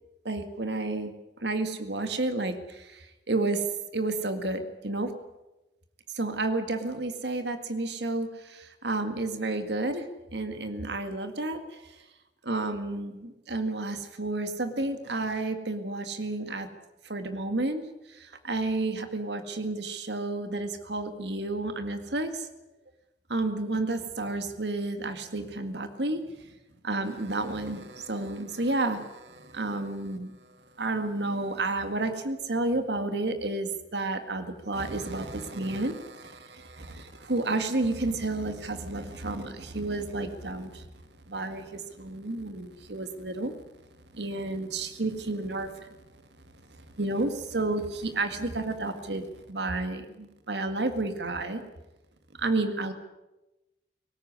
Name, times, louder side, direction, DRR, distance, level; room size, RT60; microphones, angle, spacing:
voice 1, 0.2-1.1 1.4-3.7 3.9-5.1 6.1-12.0 12.4-16.7 17.0-22.5 23.3-26.5 26.8-40.9 41.3-43.5 44.1-45.9 46.9-51.6 52.4-52.9, right 2 dB, 75° right, 8 dB, 2.0 m, -31 dB
19.5 x 18.0 x 9.7 m, 1.0 s
head